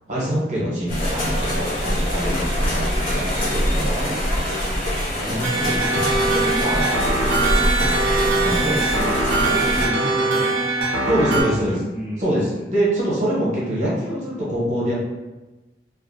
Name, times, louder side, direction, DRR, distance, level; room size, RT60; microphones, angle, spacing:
voice 1, 0.1-4.5 6.6-6.9 8.4-8.8 11.1-11.7 12.2-14.9, right 1 dB, 40° right, -6 dB, 0.7 m, -24 dB
sound 1, 0.9-9.9, equal, 50° left, 0.8 m, -24 dB
voice 2, 5.1-6.6 8.6-10.6 11.2-12.7, equal, 10° right, -9 dB, 0.4 m, -32 dB
Drum, 5.3-7.3, equal, 90° left, 0.5 m, -31 dB
sound 2, 5.4-11.4, right 2 dB, 80° right, 0.5 m, -22 dB
2.4 x 2.0 x 2.5 m, 1.1 s
head